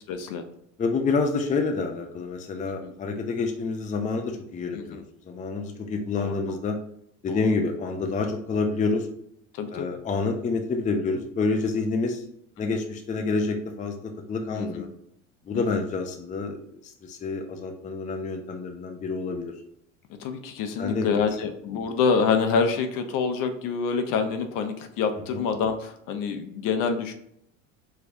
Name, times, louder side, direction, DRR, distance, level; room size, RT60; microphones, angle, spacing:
voice 1, 0.1-0.4 2.6-2.9 4.7-5.0 6.2-6.6 7.3-7.5 9.5-9.9 12.6-12.7 14.6-14.9 15.5-15.8 20.2-27.1, left 5 dB, 55° left, 7 dB, 0.8 m, -27 dB
voice 2, 0.8-5.0 5.3-6.8 7.2-9.1 9.7-12.2 12.6-14.9 15.5-16.6 17.0-19.5 20.8-21.1, left 4 dB, 20° left, 4 dB, 0.6 m, -28 dB
4.9 x 3.3 x 2.6 m, 0.72 s
hypercardioid pair, 95°, 39 cm